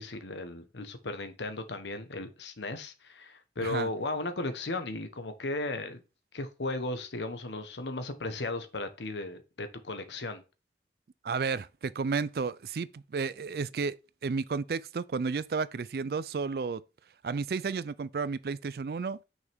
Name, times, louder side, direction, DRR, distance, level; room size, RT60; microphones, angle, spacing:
voice 1, 0.0-6.0 6.3-10.4, left 2 dB, 90° left, 1.1 m, -36 dB
voice 2, 11.2-14.0 14.2-16.8 17.2-19.2, right 5 dB, 60° right, 0.4 m, -32 dB
6.3 x 5.7 x 3.5 m
head